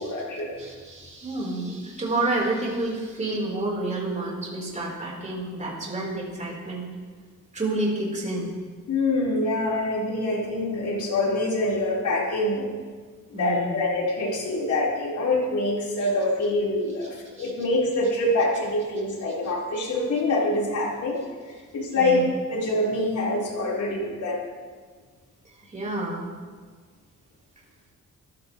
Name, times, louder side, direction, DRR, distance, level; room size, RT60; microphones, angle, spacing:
voice 1, 0.0-0.7 8.9-12.7 13.3-24.4, left 2 dB, 80° left, -4 dB, 4.7 m, -25 dB
voice 2, 0.6-6.9 7.5-8.5 13.3-13.8 16.0-16.1 17.4-17.5 21.9-22.2 25.6-26.3, right 2 dB, 25° right, -3 dB, 4.5 m, -29 dB
25.0 x 15.0 x 3.3 m, 1.5 s
wide cardioid pair, 155°, 29 cm